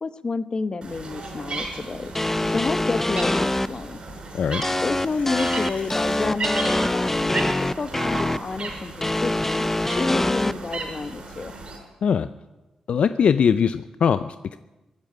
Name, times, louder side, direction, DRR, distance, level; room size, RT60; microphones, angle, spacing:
voice 1, 0.0-2.1 2.5-4.0 4.8-9.7 9.9-11.5, left 4 dB, 45° left, 13 dB, 0.9 m, -30 dB
sound 1, 0.8-11.8, right 3 dB, 55° right, 5.1 m, -35 dB
sound 2, 2.1-3.7 4.6-8.4 9.0-10.5, left 1 dB, 15° left, 0.5 m, -24 dB
sound 3, 4.7-6.3, left 5 dB, 85° left, 2.8 m, -45 dB
voice 2, 12.9-14.6, left 7 dB, 70° left, 12 dB, 0.4 m, -21 dB
16.0 x 8.9 x 9.8 m, 1.1 s
cardioid pair, 60°, 2 cm